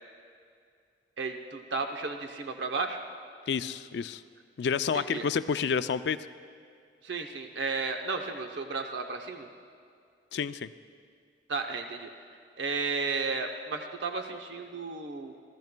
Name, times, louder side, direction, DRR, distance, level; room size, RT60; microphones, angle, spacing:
voice 1, 1.2-3.0 4.9-5.2 7.0-9.5 11.5-12.1 12.6-15.3, right 4 dB, 80° right, 4 dB, 0.7 m, -33 dB
voice 2, 3.5-4.2 4.6-6.3 10.3-10.7, left 6 dB, 70° left, 13 dB, 0.4 m, -29 dB
24.0 x 15.0 x 2.2 m, 2.3 s
head